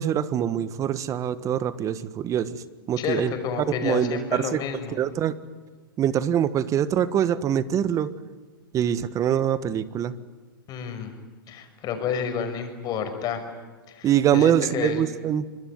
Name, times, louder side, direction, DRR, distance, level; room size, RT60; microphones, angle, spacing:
voice 1, 0.0-3.3 3.7-4.6 4.9-5.3 6.0-8.1 8.7-10.1 14.0-15.4, right 9 dB, 25° right, 15 dB, 1.5 m, -24 dB
voice 2, 3.0-5.0 10.7-11.1 11.5-13.4 13.9-15.0, left 7 dB, 35° left, 6 dB, 6.2 m, -30 dB
25.5 x 23.0 x 9.6 m, 1.4 s
hypercardioid pair, 125°, 12 cm